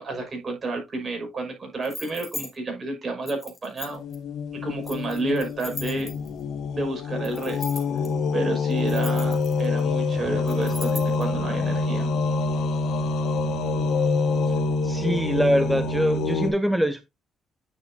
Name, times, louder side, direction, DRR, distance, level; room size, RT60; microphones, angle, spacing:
voice 1, 0.0-4.0 4.6-6.1 6.7-7.8 8.3-12.1, right 2 dB, 35° right, 4 dB, 5.9 m, -30 dB
sound 1, 1.8-2.5 3.3-4.2 4.8-6.4 7.2-8.1 8.7-9.8 10.5-11.2, left 3 dB, 20° left, 2.8 m, -38 dB
sound 2, 3.9-16.5, left 3 dB, 75° left, 1.9 m, -26 dB
voice 2, 14.8-17.0, equal, 5° right, 11 dB, 0.6 m, -23 dB
9.7 x 6.1 x 2.8 m, 0.23 s
cardioid pair, 80°, 0 cm